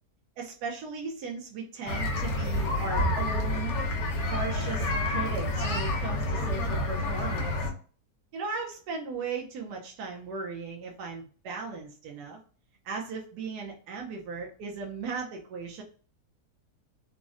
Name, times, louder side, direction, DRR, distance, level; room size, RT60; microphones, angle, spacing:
voice 1, 0.4-3.7 4.2-7.7 8.3-12.4 12.8-15.8, right 4 dB, 80° right, 0 dB, 1.1 m, -37 dB
sound 1, 1.9-7.7, left 1 dB, 70° left, 1.2 m, -29 dB
3.7 x 2.0 x 2.4 m, 0.41 s
omnidirectional pair, 1.7 m